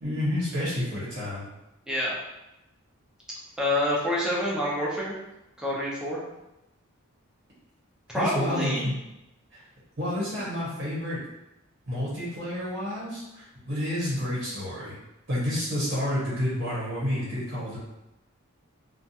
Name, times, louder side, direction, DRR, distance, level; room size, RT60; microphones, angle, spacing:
voice 1, 0.0-1.4 8.1-9.0 9.5-9.6 10.0-11.2 11.9-15.0 15.3-17.8, left 1 dB, 50° right, -7 dB, 0.9 m, -29 dB
voice 2, 1.9-2.2 3.6-5.1 5.6-6.2 8.1-8.9, left 1 dB, 5° right, -6 dB, 0.6 m, -27 dB
2.4 x 2.2 x 2.8 m, 0.93 s
head